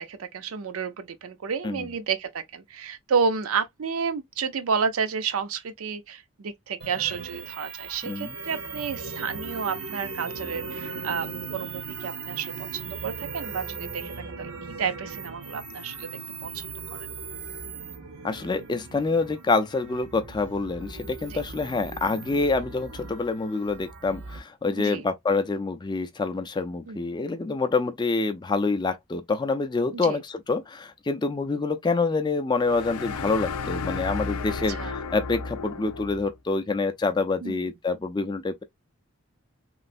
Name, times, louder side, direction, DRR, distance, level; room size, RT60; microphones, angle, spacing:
voice 1, 0.0-16.1 16.4-17.1 21.3-21.4 24.8-25.0 26.9-27.1 29.9-30.2 34.7-35.0 37.4-37.7, right 6 dB, 75° right, 0.5 m, -31 dB
sound 1, 6.8-24.4, right 4 dB, 90° right, 1.0 m, -38 dB
voice 2, 8.0-8.4 18.2-38.6, left 3 dB, 20° left, 0.3 m, -27 dB
sound 2, 32.6-36.3, left 4 dB, 90° left, 0.5 m, -33 dB
3.1 x 2.4 x 2.5 m
head